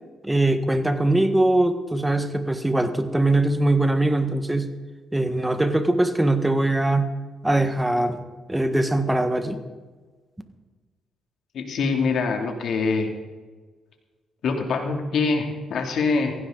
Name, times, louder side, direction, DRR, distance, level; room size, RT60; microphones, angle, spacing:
voice 1, 0.2-4.7 5.1-7.1 7.4-8.2 8.5-9.6, right 2 dB, 10° right, 8 dB, 1.5 m, -21 dB
voice 2, 11.5-13.1 14.4-16.3, left 4 dB, 65° left, 2 dB, 2.8 m, -24 dB
16.0 x 15.5 x 4.0 m, 1.3 s
cardioid pair, 90°, 0 cm